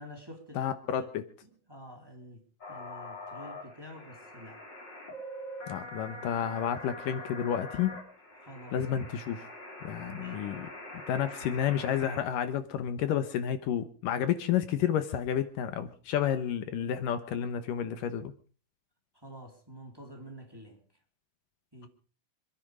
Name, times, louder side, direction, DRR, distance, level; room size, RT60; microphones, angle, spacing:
voice 1, 0.0-1.1 1.4-2.4 2.7-4.6 5.8-6.4 8.4-8.8 10.0-10.4 19.1-20.8 21.7-21.9, equal, 5° right, 3.5 m, -49 dB
voice 2, 0.6-1.2 5.7-8.0 8.7-9.5 9.8-18.3, left 9 dB, 75° left, 2.6 m, -31 dB
sound 1, 2.6-12.2, left 1 dB, 30° left, 5.2 m, -44 dB
27.0 x 10.5 x 5.1 m
omnidirectional pair, 4.0 m